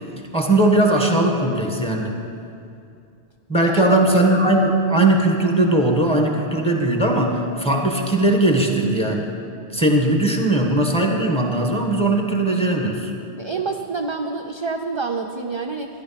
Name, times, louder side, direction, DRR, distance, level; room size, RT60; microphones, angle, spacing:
voice 1, 0.3-2.1 3.5-9.3 9.7-13.1, right 1 dB, 5° left, 1 dB, 1.4 m, -19 dB
voice 2, 3.6-4.0 13.4-15.9, right 4 dB, 35° right, 3 dB, 0.5 m, -27 dB
13.5 x 10.5 x 5.8 m, 2.4 s
omnidirectional pair, 1.1 m